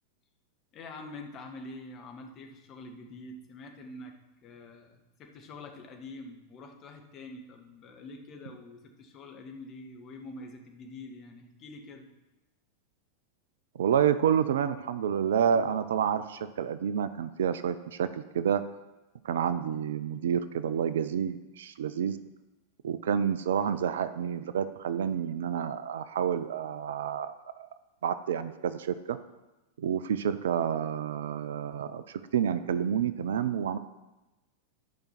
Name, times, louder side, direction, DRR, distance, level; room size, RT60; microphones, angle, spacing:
voice 1, 0.7-4.1 4.4-12.1, left 2 dB, 30° left, 3 dB, 1.5 m, -46 dB
voice 2, 13.7-18.6 19.2-22.2 22.8-27.7 28.0-29.2 29.8-33.8, right 8 dB, 60° right, 13 dB, 0.5 m, -29 dB
11.0 x 5.1 x 6.0 m, 1.0 s
figure-of-eight pair, 90°, 0 cm